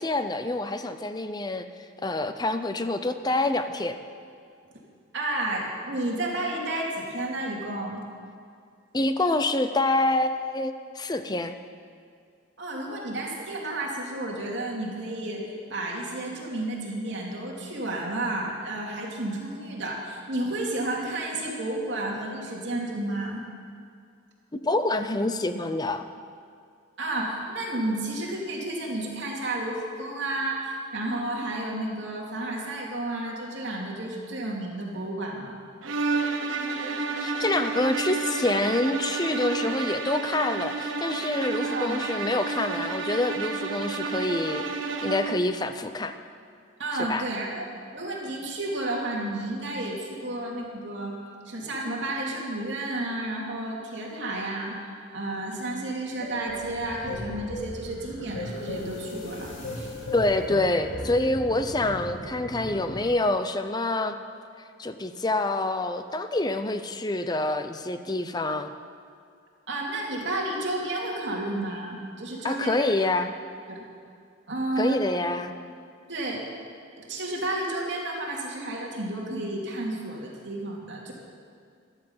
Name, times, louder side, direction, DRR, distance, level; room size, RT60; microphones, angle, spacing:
voice 1, 0.0-1.7 2.0-4.0 8.9-11.5 24.5-26.1 36.5-44.7 45.0-46.1 47.0-47.2 60.1-64.2 64.8-68.7 72.4-73.3 74.8-75.5, left 2 dB, 20° left, 9 dB, 0.6 m, -27 dB
voice 2, 5.1-8.0 12.6-15.4 15.7-23.4 27.0-35.6 41.6-42.0 46.8-51.1 51.4-59.9 69.7-72.9 73.7-73.8 74.5-75.0 76.1-76.4 77.0-81.1, right 1 dB, 65° right, -3 dB, 2.8 m, -31 dB
sound 1, 35.8-45.5, right 4 dB, 80° right, 1.2 m, -30 dB
sound 2, 56.1-63.1, equal, 60° left, 1.7 m, -43 dB
sound 3, 56.2-61.4, left 1 dB, 80° left, 2.9 m, -37 dB
14.5 x 12.5 x 5.6 m, 2.3 s
head